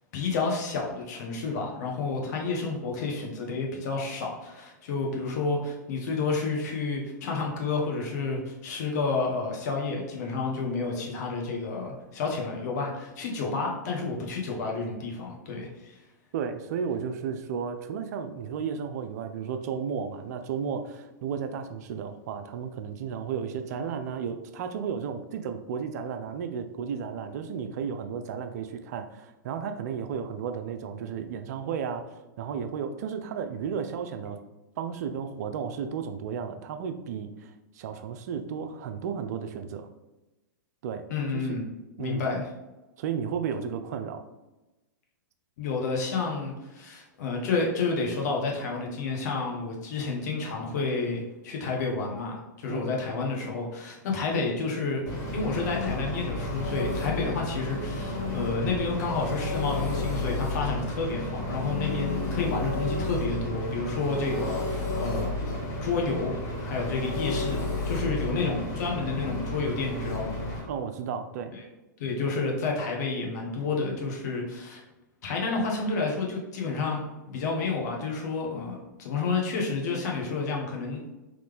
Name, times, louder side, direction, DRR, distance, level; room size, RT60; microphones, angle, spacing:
voice 1, 0.1-16.0 41.1-41.7 42.0-42.4 45.6-55.0 55.3-66.3 66.6-70.7 71.5-71.6 72.0-74.8 75.2-77.0 77.3-81.1, left 4 dB, 55° left, -1 dB, 1.2 m, -30 dB
voice 2, 16.3-34.4 34.8-39.9 40.8-41.0 41.3-41.6 42.0-42.2 43.0-44.2 52.7-52.9 70.7-71.5, right 7 dB, 55° right, 8 dB, 0.4 m, -33 dB
Engine, 55.1-70.6, left 2 dB, 30° left, 1.5 m, -31 dB
3.9 x 3.1 x 3.5 m, 1.0 s
hypercardioid pair, 115°, 11 cm